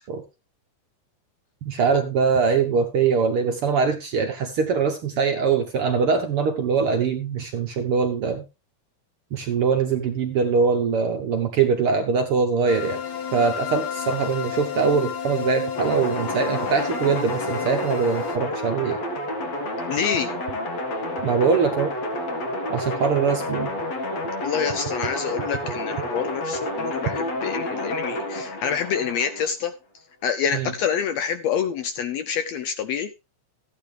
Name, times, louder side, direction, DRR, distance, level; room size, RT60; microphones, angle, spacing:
voice 1, 1.6-8.4 9.3-13.0 13.3-19.0 21.2-21.9 22.7-23.7 30.5-30.7, right 5 dB, 60° right, 5 dB, 1.5 m, -22 dB
sound 1, 12.7-18.4, left 8 dB, 45° left, 1.5 m, -31 dB
sound 2, 15.7-29.5, left 1 dB, 60° left, 2.9 m, -29 dB
voice 2, 19.9-20.3 24.4-29.7 30.2-33.3, left 7 dB, 75° left, 10 dB, 1.6 m, -27 dB
14.0 x 9.3 x 3.3 m, 0.27 s
omnidirectional pair, 3.6 m